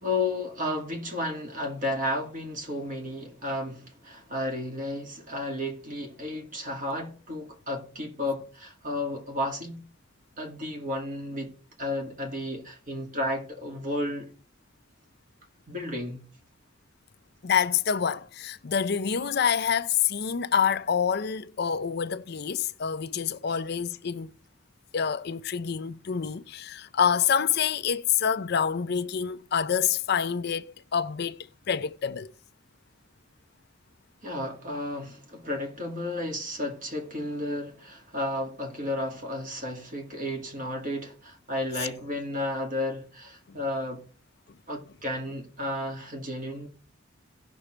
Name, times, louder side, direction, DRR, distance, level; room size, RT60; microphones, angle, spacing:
voice 1, 0.0-9.8 10.4-11.5 11.8-14.3 15.7-16.2 34.2-44.0 44.7-46.7, left 1 dB, 40° right, 2.1 m, -32 dB
voice 2, 17.4-24.3 24.9-32.3 41.8-41.9, left 7 dB, 50° left, 0.5 m, -27 dB
17.5 x 6.1 x 3.3 m
head